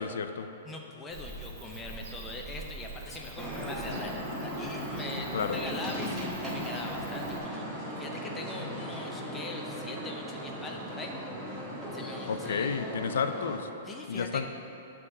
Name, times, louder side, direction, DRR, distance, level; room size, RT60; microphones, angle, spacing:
voice 1, 0.0-0.5 5.3-5.6 12.3-13.7 14.1-14.5, left 6 dB, 75° left, 9 dB, 0.4 m, -31 dB
voice 2, 0.6-7.6 8.0-11.1 11.9-12.7 13.8-14.5, left 3 dB, 10° left, 0 dB, 0.5 m, -41 dB
Bird / Cricket, 1.1-7.4, right 2 dB, 35° right, 1.0 m, -45 dB
sound 1, 3.4-13.6, equal, 10° right, 1.1 m, -37 dB
9.5 x 3.6 x 6.6 m, 2.9 s
hypercardioid pair, 180°, 0 cm